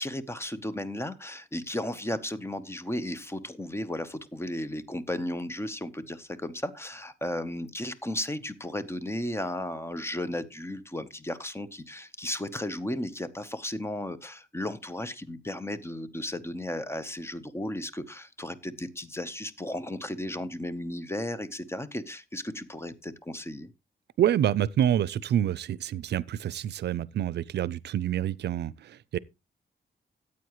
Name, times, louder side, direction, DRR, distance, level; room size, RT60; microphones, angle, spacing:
voice 1, 0.0-23.7, left 1 dB, 15° left, 0.9 m, -34 dB
voice 2, 24.2-29.2, right 10 dB, 80° right, 0.5 m, -27 dB
14.5 x 8.4 x 3.0 m
wide cardioid pair, 110°, 17 cm